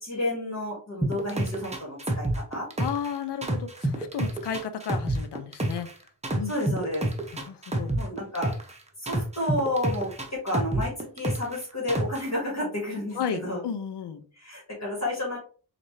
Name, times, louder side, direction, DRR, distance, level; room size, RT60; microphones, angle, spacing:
voice 1, 0.0-2.7 6.5-7.0 8.0-8.5 9.0-13.6 14.4-15.4, left 1 dB, 40° left, -3 dB, 1.8 m, -31 dB
sound 1, 1.0-3.1 3.4-5.9 6.2-8.7 9.1-11.6 11.9-12.3, right 2 dB, 15° right, 0.8 m, -28 dB
voice 2, 2.8-5.9 6.4-6.8 7.3-8.0 13.1-14.3, left 7 dB, 75° left, 9 dB, 0.6 m, -33 dB
4.2 x 2.5 x 3.1 m, 0.40 s
wide cardioid pair, 75°, 41 cm